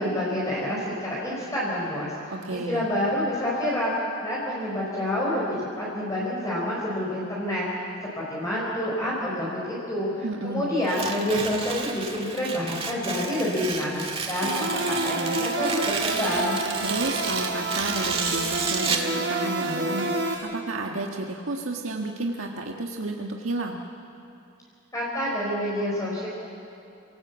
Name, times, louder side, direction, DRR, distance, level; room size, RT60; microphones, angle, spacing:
voice 1, 0.0-2.3 2.7-16.6 24.9-26.3, left 1 dB, 15° left, -5 dB, 4.6 m, -28 dB
voice 2, 2.3-2.9 10.2-10.8 16.8-23.8, right 2 dB, 85° right, 1 dB, 1.6 m, -32 dB
Tearing, 10.8-19.1, right 5 dB, 30° right, 1.9 m, -31 dB
sound 1, 14.4-20.3, right 2 dB, 65° right, 7.2 m, -29 dB
29.0 x 18.0 x 8.2 m, 2.6 s
head